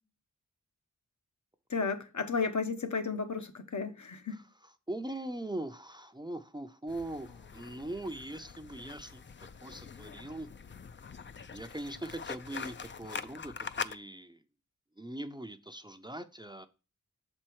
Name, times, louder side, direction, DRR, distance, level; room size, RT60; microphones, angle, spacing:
voice 1, 1.7-4.4, left 4 dB, 65° left, 1.0 m, -33 dB
voice 2, 4.9-9.2 9.6-10.5 11.5-14.4 15.0-16.7, right 1 dB, 15° right, 0.5 m, -41 dB
sound 1, 6.9-14.0, left 5 dB, 40° left, 0.4 m, -43 dB
6.8 x 4.4 x 4.6 m
wide cardioid pair, 70°, 31 cm